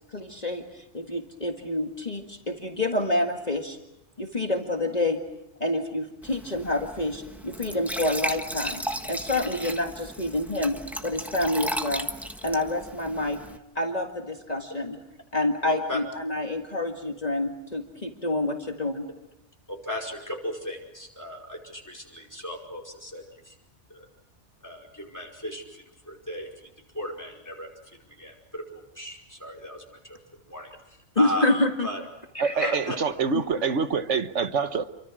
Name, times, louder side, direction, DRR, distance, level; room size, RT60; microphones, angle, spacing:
voice 1, 0.1-3.8 4.2-5.2 5.6-10.8 11.0-12.1 12.4-13.4 13.8-15.0 15.3-19.1 31.2-31.9 32.3-32.7 33.3-33.4, left 2 dB, 35° left, 2.0 m, -28 dB
Glass / Trickle dribble / Fill (with liquid), 6.2-13.6, equal, ahead, 1.3 m, -35 dB
voice 2, 15.6-16.0 19.7-23.5 23.9-24.1 24.6-26.7 26.9-27.7 28.1-30.2 30.5-31.5 31.8-32.0 32.5-33.0, left 1 dB, 15° left, 5.2 m, -36 dB
voice 3, 32.4-34.8, right 5 dB, 85° right, 1.5 m, -26 dB
28.5 x 24.5 x 6.2 m
omnidirectional pair, 1.2 m